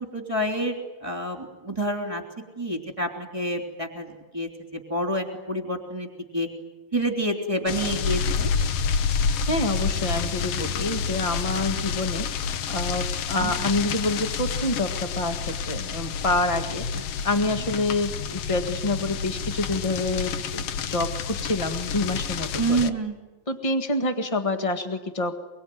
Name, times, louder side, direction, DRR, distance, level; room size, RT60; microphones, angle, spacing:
voice 1, 0.0-2.2 2.6-6.5 6.9-8.5 13.4-13.5 22.6-23.2, right 1 dB, 10° right, 3 dB, 3.0 m, -28 dB
sound 1, 7.7-22.9, left 6 dB, 65° left, 1.5 m, -29 dB
voice 2, 9.5-16.8 17.2-22.9 23.5-25.4, left 2 dB, 40° left, 6 dB, 0.4 m, -27 dB
25.0 x 23.5 x 9.5 m, 1.1 s
omnidirectional pair, 4.0 m